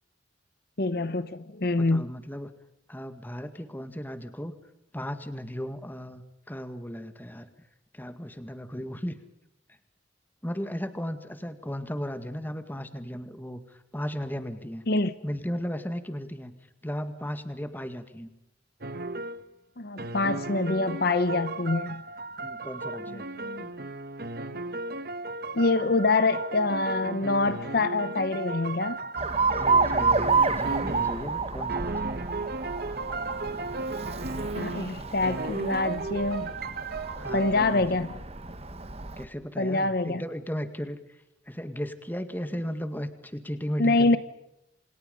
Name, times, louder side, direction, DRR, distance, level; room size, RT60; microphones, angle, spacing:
voice 1, 0.8-2.1 14.9-15.1 19.8-22.0 23.1-23.6 25.5-29.0 34.5-36.5 37.3-38.1 39.6-40.2 43.8-44.2, left 2 dB, 50° left, 14 dB, 0.9 m, -25 dB
voice 2, 1.8-2.5 2.9-4.5 4.9-7.5 7.9-9.2 9.7-9.8 10.4-14.8 15.2-16.5 16.8-18.3 22.4-23.3 29.5-32.1 37.2-38.0 39.2-44.2, equal, 10° left, 9 dB, 2.0 m, -36 dB
sound 1, 18.8-19.4 20.0-31.4 31.7-37.8, right 2 dB, 50° right, 1.3 m, -35 dB
Alarm, 29.2-39.3, right 4 dB, 30° right, 1.5 m, -29 dB
28.5 x 27.0 x 5.4 m, 0.86 s
head